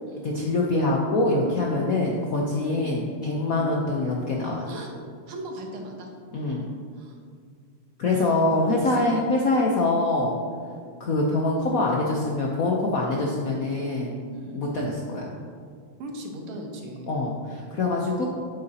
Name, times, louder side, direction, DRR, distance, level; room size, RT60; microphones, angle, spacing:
voice 1, 0.2-4.7 6.3-6.7 8.0-10.4 11.0-14.2 14.5-15.3 17.1-18.2, left 2 dB, 65° left, -2 dB, 0.8 m, -24 dB
voice 2, 2.6-2.9 3.4-3.7 4.7-4.9 5.3-6.1 7.0-7.2 8.1-9.1 10.6-10.8 14.3-14.6 16.0-17.1, right 1 dB, 80° right, 1 dB, 1.9 m, -38 dB
8.3 x 7.9 x 2.8 m, 2.1 s
omnidirectional pair, 2.4 m